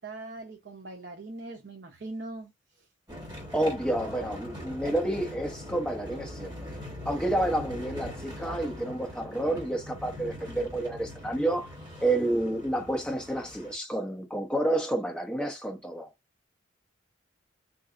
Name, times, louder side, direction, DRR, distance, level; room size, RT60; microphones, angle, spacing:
voice 1, 0.0-2.9, right 2 dB, 55° right, 0.6 m, -41 dB
sound 1, 3.1-13.7, left 1 dB, 20° right, 1.6 m, -42 dB
voice 2, 3.5-11.7 12.0-16.1, right 1 dB, 5° left, 0.8 m, -29 dB
4.0 x 2.7 x 2.4 m
head